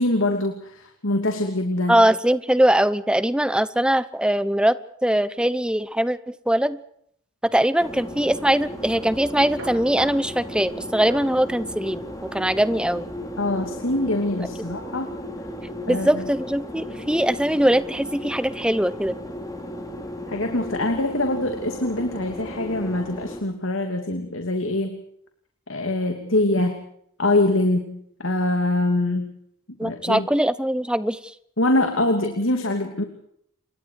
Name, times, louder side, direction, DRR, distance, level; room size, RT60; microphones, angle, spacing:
voice 1, 0.0-2.0 13.4-15.1 15.9-16.2 20.3-25.0 25.7-26.8 27.2-29.4 29.8-30.3 31.6-33.0, left 2 dB, 70° left, 4 dB, 2.8 m, -24 dB
voice 2, 1.9-6.8 7.4-12.0 12.3-13.1 15.9-19.2 29.8-31.2, right 1 dB, 5° right, 14 dB, 0.9 m, -21 dB
sound 1, 7.8-23.4, left 1 dB, 15° left, 3.6 m, -35 dB
sound 2, 8.7-15.6, right 1 dB, 65° right, 7.7 m, -46 dB
29.0 x 24.0 x 4.8 m, 0.70 s
head